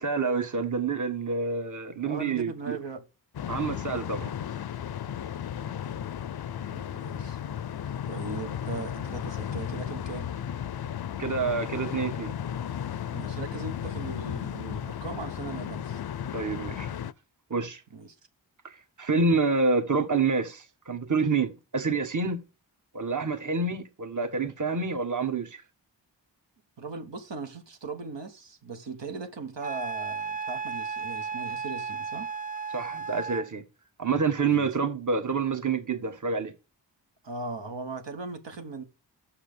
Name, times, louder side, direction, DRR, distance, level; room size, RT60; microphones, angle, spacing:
voice 1, 0.0-2.8 3.5-4.3 11.2-12.3 16.3-16.9 17.5-17.8 18.6-22.4 22.9-25.6 32.7-33.6 34.0-36.5, right 4 dB, 40° right, 1.3 m, -28 dB
voice 2, 2.0-3.0 6.7-7.4 8.1-10.3 13.1-16.0 17.9-18.1 26.8-32.3 34.5-34.7 37.2-38.8, right 3 dB, 70° right, 1.4 m, -39 dB
sound 1, 3.3-17.1, left 9 dB, 55° left, 0.6 m, -34 dB
Wind instrument woodwind instrument, 29.6-33.5, right 5 dB, 20° right, 0.4 m, -34 dB
5.9 x 5.8 x 6.8 m
cardioid pair, 40°, 45 cm